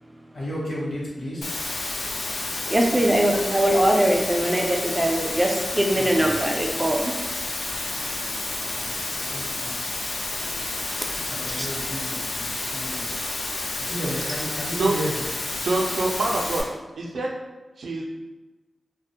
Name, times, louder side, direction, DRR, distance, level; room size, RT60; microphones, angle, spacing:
voice 1, 0.3-1.5 6.0-6.4 9.3-9.8 11.1-13.1 13.8-15.3, equal, 65° left, -6 dB, 0.8 m, -33 dB
Water, 1.4-16.6, left 2 dB, 85° left, 0.4 m, -30 dB
voice 2, 2.7-7.2 11.5-11.7, right 1 dB, 15° right, 1 dB, 0.3 m, -22 dB
voice 3, 15.6-16.7 17.0-17.3 17.8-18.1, right 2 dB, 85° right, -1 dB, 0.4 m, -25 dB
2.4 x 2.1 x 2.7 m, 1.2 s
wide cardioid pair, 120°, 0 cm